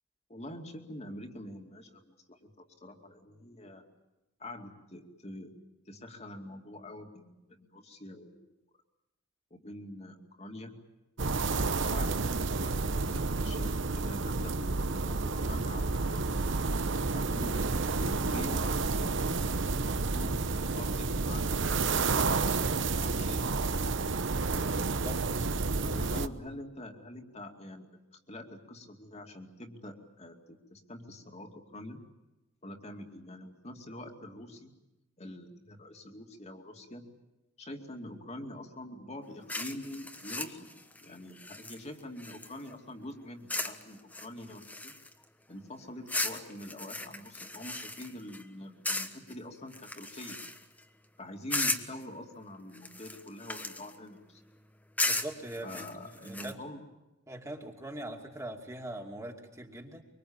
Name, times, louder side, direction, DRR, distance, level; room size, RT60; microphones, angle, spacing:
voice 1, 0.3-3.8 4.4-5.5 5.9-8.5 9.5-10.8 11.8-16.4 17.1-17.7 18.0-22.1 23.0-23.9 25.8-27.9 28.3-32.0 32.6-34.7 35.2-37.1 37.6-40.7 41.0-44.9 45.5-50.4 51.2-54.4 55.6-56.8, left 1 dB, 35° left, 3 dB, 2.5 m, -45 dB
sound 1, 11.2-26.3, right 3 dB, 65° right, 1.0 m, -30 dB
voice 2, 24.7-25.2 55.0-56.6 57.3-60.0, right 1 dB, 15° right, 2 dB, 2.7 m, -42 dB
sound 2, 39.5-42.7 43.5-43.8 44.1-45.2 46.1-48.4 48.8-49.3 49.7-50.8 51.5-52.0 52.7-54.0 55.0-56.5, left 2 dB, 10° left, 1.3 m, -35 dB
24.5 x 24.5 x 8.8 m, 0.98 s
head